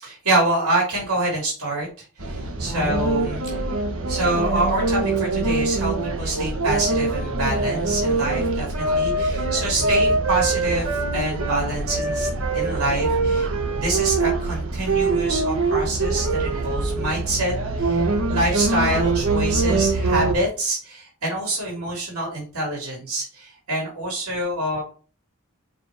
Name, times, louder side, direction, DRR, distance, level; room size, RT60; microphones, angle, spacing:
voice 1, 0.0-3.6 4.1-12.3 12.5-13.5 13.8-24.8, right 1 dB, 85° right, -3 dB, 3.3 m, -26 dB
sound 1, 2.2-20.3, right 3 dB, 65° right, 1.3 m, -23 dB
5.5 x 5.0 x 4.9 m, 0.38 s
head